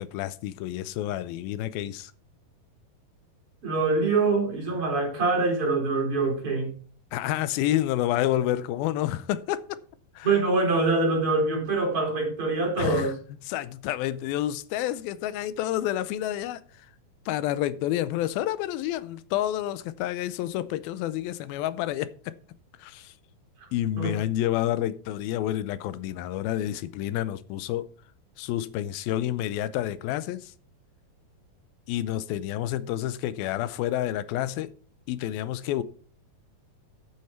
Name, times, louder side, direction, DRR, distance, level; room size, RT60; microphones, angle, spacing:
voice 1, 0.0-2.1 7.1-9.6 10.2-10.3 12.8-13.1 13.5-16.9 17.3-22.3 22.8-23.1 23.7-27.9 28.4-30.5 31.9-34.7 35.1-35.8, left 13 dB, 85° left, 2.5 m, -29 dB
voice 2, 3.6-6.7 10.2-13.2 23.6-23.7 24.0-24.2, right 3 dB, 40° right, 4.8 m, -24 dB
10.0 x 8.7 x 4.4 m
omnidirectional pair, 4.2 m